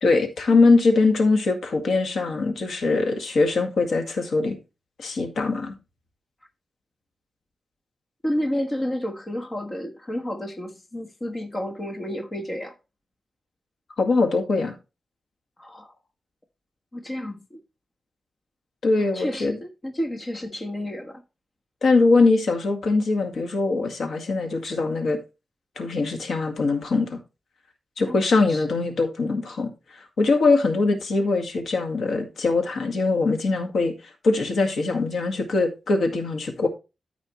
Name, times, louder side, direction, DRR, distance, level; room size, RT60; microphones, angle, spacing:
voice 1, 0.0-4.6 5.0-5.8 14.0-14.7 18.8-19.6 21.8-25.2 25.8-27.2 28.0-36.7, left 3 dB, 70° left, 1.9 m, -22 dB
voice 2, 8.2-12.7 15.6-15.9 16.9-17.6 19.0-21.2 28.0-28.6, equal, 20° left, 1.3 m, -31 dB
13.5 x 4.9 x 3.1 m
wide cardioid pair, 160°, 0 cm